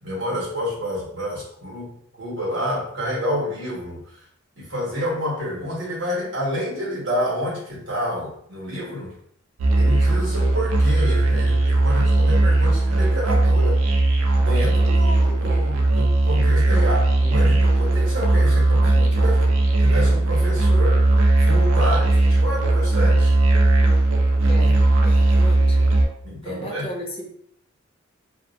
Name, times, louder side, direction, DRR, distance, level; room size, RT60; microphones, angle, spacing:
voice 1, 0.0-4.2 4.5-9.1 9.7-13.8 14.3-19.5 19.8-21.0 21.4-23.4 26.2-26.9, equal, 55° right, -6 dB, 1.4 m, -29 dB
Musical instrument, 9.6-26.1, right 2 dB, 75° right, 0.4 m, -18 dB
voice 2, 24.5-25.9 26.4-27.3, equal, 25° left, 0 dB, 0.5 m, -35 dB
2.7 x 2.1 x 2.5 m, 0.67 s
head